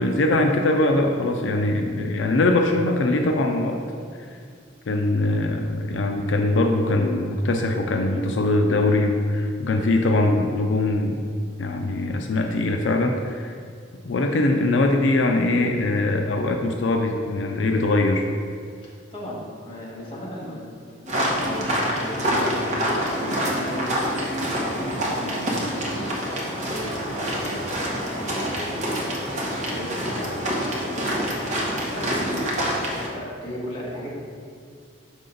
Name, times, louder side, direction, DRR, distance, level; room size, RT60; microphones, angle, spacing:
voice 1, 0.0-3.8 4.9-11.2 11.6-13.5 14.0-18.2, left 2 dB, 85° left, 3 dB, 0.5 m, -22 dB
voice 2, 18.8-20.6 21.0-26.2 26.6-27.9 28.2-30.3 30.7-34.1, left 1 dB, 30° left, -7 dB, 1.6 m, -36 dB
sound 1, 21.1-33.1, equal, 40° right, 1.2 m, -26 dB
6.5 x 5.3 x 3.9 m, 2.2 s
head